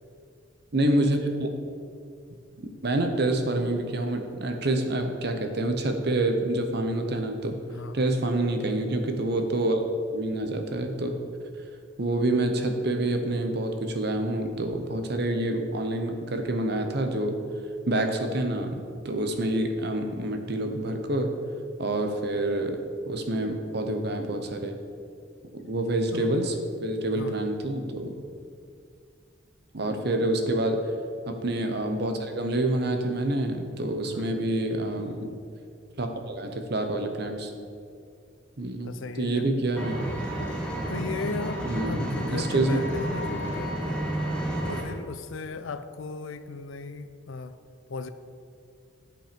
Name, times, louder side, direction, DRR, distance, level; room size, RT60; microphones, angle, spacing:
voice 1, 0.7-1.5 2.6-7.6 7.9-9.8 10.1-11.1 12.0-17.4 17.9-21.3 21.8-22.8 23.1-24.8 25.5-26.5 26.8-28.1 29.7-30.8 31.3-35.3 36.0-37.5 38.6-40.1 41.6-42.8, right 1 dB, 55° right, 5 dB, 0.9 m, -27 dB
voice 2, 7.7-8.1 26.1-26.5 27.1-27.4 30.2-30.3 34.0-34.3 38.8-39.5 40.9-44.1 44.7-47.5 47.9-48.1, left 3 dB, 85° left, 11 dB, 0.5 m, -37 dB
Engine, 39.8-44.8, right 1 dB, 5° left, 1.3 m, -31 dB
10.5 x 5.6 x 5.2 m, 2.3 s
head